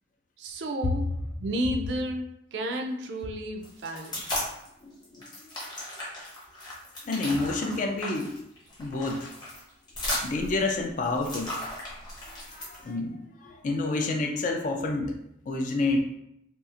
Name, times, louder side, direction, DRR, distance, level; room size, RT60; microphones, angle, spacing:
voice 1, 0.4-1.1 1.4-2.2 2.5-4.4, equal, 65° right, 4 dB, 0.4 m, -32 dB
sound 1, 3.6-4.7 5.0-12.9, left 1 dB, 20° left, 0.7 m, -36 dB
voice 2, 4.8-5.3 7.1-8.3 8.8-9.3 10.2-11.5 12.5-15.2 15.5-16.0, left 2 dB, 40° left, 3 dB, 0.3 m, -29 dB
2.7 x 2.4 x 2.4 m, 0.78 s
head